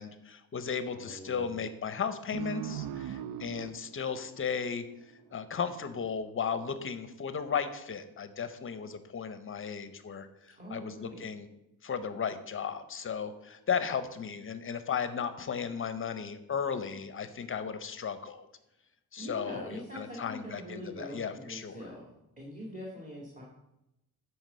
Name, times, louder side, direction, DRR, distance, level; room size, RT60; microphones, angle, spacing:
voice 1, 0.0-4.9 5.3-11.5 11.8-18.5 19.1-21.8, left 6 dB, 35° left, 11 dB, 0.6 m, -35 dB
voice 2, 0.9-1.5 10.6-11.2 19.2-22.1 22.4-23.4, equal, 20° right, -3 dB, 1.9 m, -43 dB
sound 1, 2.3-5.5, right 9 dB, 80° right, 0.5 m, -40 dB
9.4 x 4.7 x 6.6 m, 0.88 s
cardioid pair, 145°, 36 cm